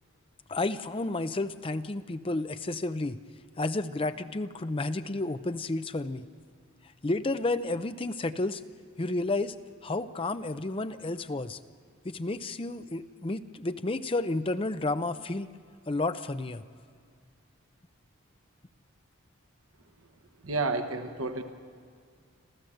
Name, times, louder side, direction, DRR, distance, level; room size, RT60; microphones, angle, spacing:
voice 1, 0.5-3.2 3.6-6.3 7.0-8.6 9.0-9.5 9.8-11.6 12.0-15.5 15.9-16.6, left 2 dB, 25° left, 11 dB, 0.5 m, -31 dB
voice 2, 20.4-21.4, right 3 dB, 75° right, 6 dB, 1.2 m, -30 dB
26.5 x 14.5 x 7.8 m, 2.1 s
head